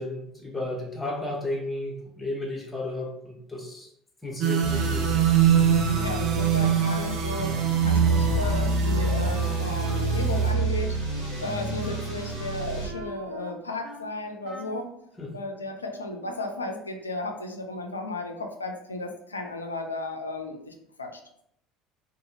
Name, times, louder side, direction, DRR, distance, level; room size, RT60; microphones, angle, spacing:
voice 1, 0.0-3.9 4.2-5.1 15.2-15.3, left 2 dB, 10° left, 0 dB, 0.8 m, -33 dB
sound 1, 4.4-10.5, right 9 dB, 45° right, 0.4 m, -25 dB
sound 2, 4.6-12.9, right 2 dB, 90° right, 0.9 m, -28 dB
voice 2, 5.9-7.6 7.8-11.0 11.4-14.9 15.3-21.4, left 2 dB, 85° left, 4 dB, 0.3 m, -34 dB
Wind instrument woodwind instrument, 7.3-14.1 14.4-14.9, equal, 30° right, 0.8 m, -44 dB
2.7 x 2.4 x 2.7 m, 0.73 s
figure-of-eight pair, 65°, 0 cm